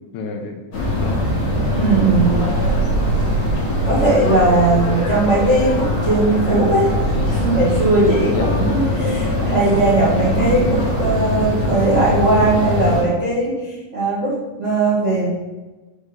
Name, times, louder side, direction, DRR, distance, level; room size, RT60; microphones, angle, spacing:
voice 1, 0.1-1.3 2.0-2.7 3.8-4.3 8.3-8.9, left 2 dB, 75° left, 3 dB, 2.2 m, -30 dB
sound 1, 0.7-13.0, equal, 55° left, 2.9 m, -21 dB
voice 2, 1.7-2.5 3.9-6.9 7.2-15.3, right 2 dB, 45° right, -9 dB, 0.9 m, -18 dB
6.2 x 4.1 x 5.2 m, 1.2 s
omnidirectional pair, 3.8 m